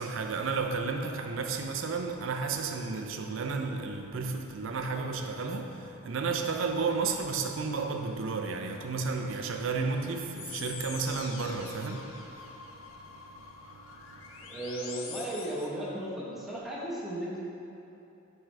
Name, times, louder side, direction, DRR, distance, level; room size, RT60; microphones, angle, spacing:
voice 1, 0.0-14.5, right 4 dB, 65° right, 0.5 m, -33 dB
sound 1, 6.6-15.7, left 5 dB, 75° left, 0.6 m, -47 dB
voice 2, 14.5-17.4, right 1 dB, ahead, 1.0 m, -35 dB
7.6 x 4.7 x 3.3 m
head